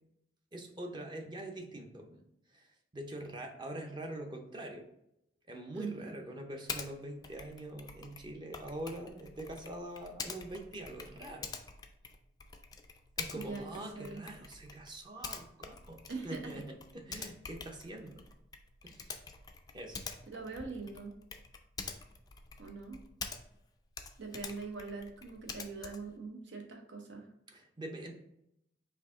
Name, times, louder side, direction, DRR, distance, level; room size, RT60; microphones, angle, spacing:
voice 1, 0.5-2.2 2.5-4.9 5.5-11.5 13.2-18.2 18.8-19.3 19.7-20.0 27.5-28.1, right 1 dB, 25° right, 3 dB, 0.6 m, -44 dB
voice 2, 5.7-6.2 13.3-14.2 16.1-16.5 20.3-21.1 22.6-23.0 24.2-27.3, right 4 dB, 80° right, 3 dB, 0.9 m, -42 dB
Typing, 6.7-6.9 7.2-23.7 23.9-26.2, left 5 dB, 20° left, 0.4 m, -46 dB
4.6 x 2.7 x 3.6 m, 0.79 s
head